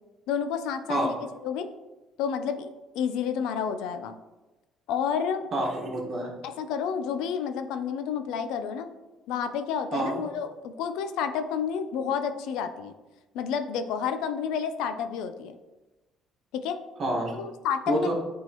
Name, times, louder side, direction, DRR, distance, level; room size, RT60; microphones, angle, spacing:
voice 1, 0.3-1.1 1.4-1.7 2.2-2.7 2.9-4.1 4.9-5.5 6.4-8.9 9.3-12.9 13.3-15.5 16.5-16.8 17.4-18.1, left 7 dB, 90° left, 9 dB, 0.5 m, -30 dB
voice 2, 5.5-6.3 9.9-10.2 17.0-17.3 17.9-18.1, right 1 dB, 40° right, -1 dB, 1.5 m, -28 dB
8.9 x 3.7 x 3.0 m, 1.1 s
cardioid pair, 125°, 0 cm